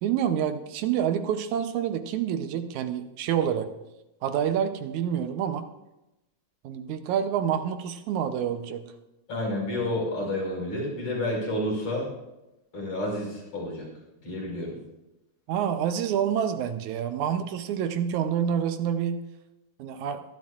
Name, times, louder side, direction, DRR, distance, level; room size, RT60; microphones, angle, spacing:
voice 1, 0.0-3.7 4.2-5.7 6.6-8.8 15.5-19.2 19.8-20.2, right 9 dB, 80° right, 8 dB, 2.2 m, -27 dB
voice 2, 9.3-12.1 12.7-13.9 14.2-14.8, left 1 dB, 60° left, -2 dB, 6.3 m, -30 dB
23.0 x 11.5 x 2.5 m, 0.96 s
omnidirectional pair, 3.4 m